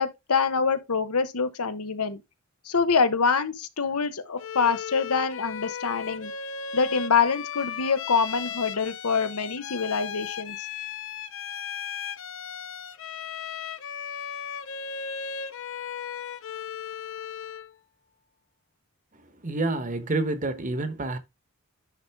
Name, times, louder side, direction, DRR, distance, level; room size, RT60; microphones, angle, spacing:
voice 1, 0.0-2.2 2.6-6.3 6.7-10.7, left 5 dB, 80° left, 1.0 m, -25 dB
Bowed string instrument, 4.4-17.8, left 7 dB, 60° left, 0.6 m, -36 dB
voice 2, 19.2-21.2, right 2 dB, 35° right, 1.1 m, -28 dB
10.5 x 3.9 x 3.5 m
head